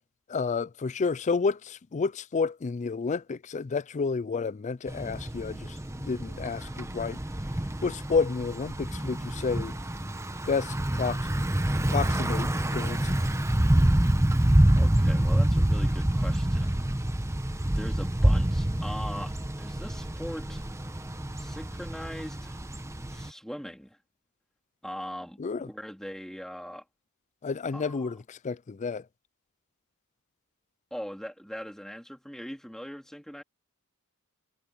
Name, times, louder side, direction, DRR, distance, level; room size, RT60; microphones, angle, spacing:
voice 1, 0.3-7.2 7.8-9.7 10.5-11.3 11.9-13.2 25.4-25.7 27.4-29.0, left 4 dB, 30° left, 0.4 m, -30 dB
Thunder / Bicycle, 4.9-23.3, right 1 dB, 15° right, 0.9 m, -27 dB
voice 2, 14.7-16.8 17.6-20.7 21.4-22.6 23.1-24.0 24.8-26.8 27.7-28.1 30.9-33.4, equal, ahead, 3.1 m, -40 dB
head